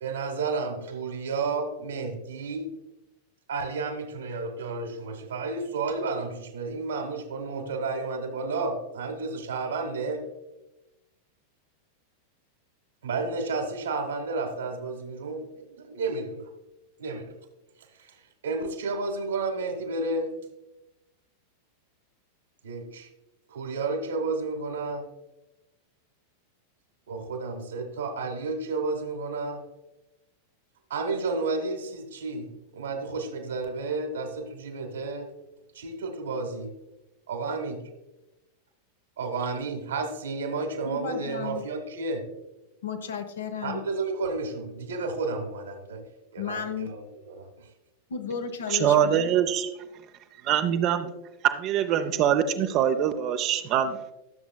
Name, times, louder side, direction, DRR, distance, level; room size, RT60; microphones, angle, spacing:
voice 1, 0.0-2.7 3.5-10.3 13.0-16.5 17.0-17.3 17.8-20.3 22.6-23.1 23.5-25.1 27.1-29.6 30.9-35.3 35.7-36.7 37.3-37.8 39.2-42.3 43.6-46.0 46.3-47.7, right 3 dB, 65° right, 5 dB, 1.4 m, -32 dB
voice 2, 40.8-41.6 42.8-43.8 46.4-46.9 48.1-49.0, left 6 dB, 65° left, 7 dB, 0.9 m, -33 dB
voice 3, 48.7-49.7 50.4-51.1 51.5-54.1, right 9 dB, 40° right, 7 dB, 0.5 m, -24 dB
13.0 x 7.1 x 2.2 m, 0.96 s
figure-of-eight pair, 90°, 0 cm